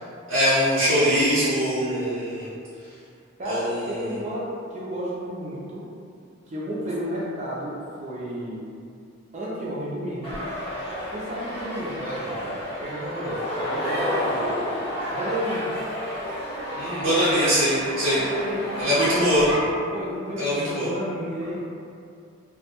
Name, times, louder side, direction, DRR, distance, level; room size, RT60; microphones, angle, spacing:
voice 1, 0.3-2.4 3.4-4.2 16.8-18.2 18.8-19.4 20.4-20.9, equal, 70° right, -13 dB, 0.9 m, -22 dB
voice 2, 1.8-2.5 3.4-5.9 6.5-8.7 9.3-10.4 11.1-14.7 15.1-15.7 18.1-21.6, equal, 35° right, -5 dB, 0.5 m, -32 dB
sound 1, 10.2-19.6, equal, 30° left, 0.7 m, -31 dB
2.3 x 2.1 x 2.9 m, 2.4 s
head